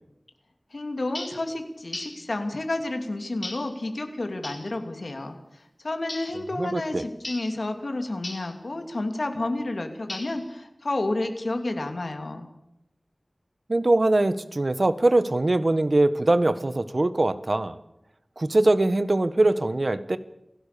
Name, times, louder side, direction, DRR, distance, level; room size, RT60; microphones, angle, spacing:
voice 1, 0.7-12.5, left 2 dB, 75° left, 5 dB, 2.9 m, -30 dB
sound 1, 1.1-1.4 1.9-2.2 3.4-3.7 4.4-4.7 6.1-6.4 7.2-7.5 8.2-8.5 10.1-10.5, left 1 dB, 50° left, 5.3 m, -37 dB
voice 2, 6.6-7.0 13.7-17.8 18.4-20.2, right 2 dB, 55° right, 13 dB, 1.3 m, -22 dB
28.0 x 16.0 x 7.0 m, 0.88 s
wide cardioid pair, 55°, 0 cm